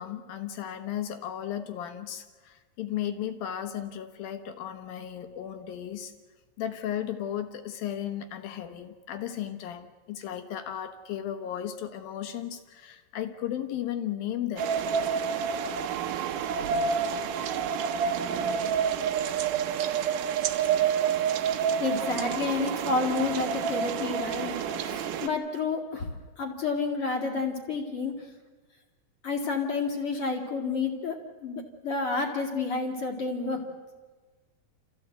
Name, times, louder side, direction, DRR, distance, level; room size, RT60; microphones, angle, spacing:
voice 1, 0.0-6.1 6.6-14.7, left 10 dB, 70° left, 7 dB, 2.5 m, -35 dB
sound 1, 14.6-25.3, right 7 dB, 85° right, 1.8 m, -28 dB
voice 2, 21.8-26.1 26.4-28.1 29.2-31.2 31.4-33.6, left 4 dB, 40° left, 1 dB, 2.1 m, -30 dB
28.5 x 15.0 x 7.9 m, 1.4 s
omnidirectional pair, 5.1 m